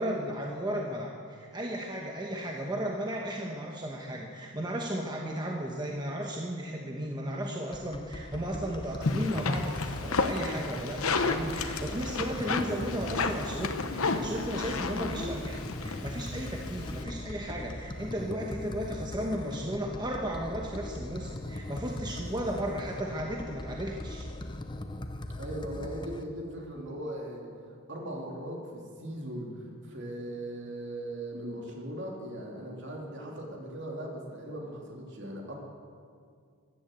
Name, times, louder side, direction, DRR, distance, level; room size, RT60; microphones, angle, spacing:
voice 1, 0.0-24.3, equal, 20° right, 0 dB, 1.1 m, -35 dB
sound 1, 7.7-26.2, left 1 dB, 20° left, 0.7 m, -40 dB
sound 2, 9.0-17.0, left 3 dB, 75° left, 1.0 m, -32 dB
voice 2, 25.4-35.6, right 1 dB, 55° right, -1 dB, 3.1 m, -39 dB
15.0 x 10.5 x 8.0 m, 2.2 s
head